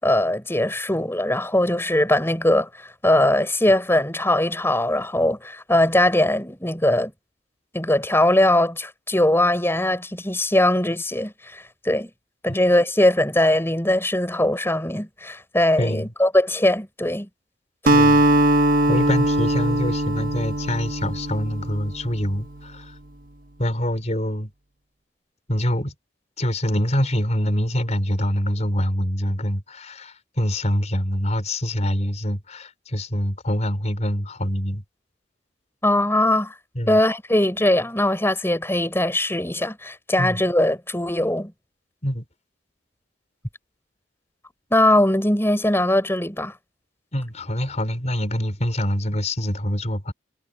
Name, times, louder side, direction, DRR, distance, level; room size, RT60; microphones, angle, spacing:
voice 1, 0.0-2.7 3.0-7.1 7.7-12.1 12.4-17.3 35.8-36.5 36.9-41.5 44.7-46.5, left 1 dB, 15° left, 6.6 m, -20 dB
voice 2, 15.8-16.1 17.9-18.3 18.9-23.0 23.6-24.5 25.5-25.9 26.4-34.8 36.7-37.0 40.2-40.4 42.0-42.2 47.1-50.1, equal, 40° left, 4.8 m, -25 dB
Acoustic guitar, 17.9-22.3, right 1 dB, 50° right, 1.6 m, -20 dB
head